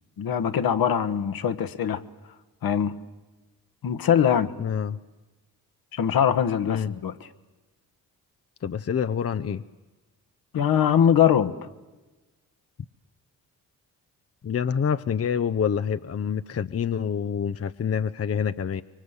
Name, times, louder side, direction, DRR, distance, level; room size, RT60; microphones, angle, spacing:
voice 1, 0.2-2.0 2.6-3.0 3.8-4.5 5.9-7.2 10.5-11.5, left 8 dB, 65° left, 1.3 m, -22 dB
voice 2, 4.6-5.0 6.7-6.9 8.6-9.6 14.4-18.8, left 7 dB, 40° left, 0.8 m, -27 dB
24.5 x 23.5 x 8.2 m
supercardioid pair, 50°, 38 cm